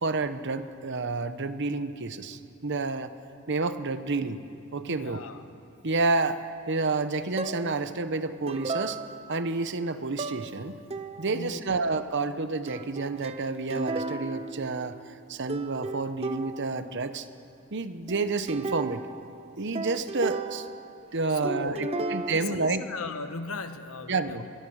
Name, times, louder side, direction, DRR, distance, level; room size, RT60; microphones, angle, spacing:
voice 1, 0.0-3.1 3.5-4.4 4.7-5.2 5.8-6.4 6.7-9.0 9.3-10.8 11.2-15.0 15.3-17.3 17.7-19.0 19.6-20.7 21.1-22.8 24.1-24.4, right 3 dB, 55° right, 11 dB, 1.0 m, -29 dB
voice 2, 4.9-5.4 11.2-11.8 21.3-24.5, left 3 dB, 70° left, 8 dB, 1.4 m, -38 dB
sound 1, 7.4-7.9 8.5-9.5 10.2-10.6 10.9-11.5 12.7-15.2 15.5-16.9 18.1-21.2 21.4-22.3, right 3 dB, 25° right, 0.9 m, -35 dB
23.0 x 23.0 x 6.5 m, 2.7 s
head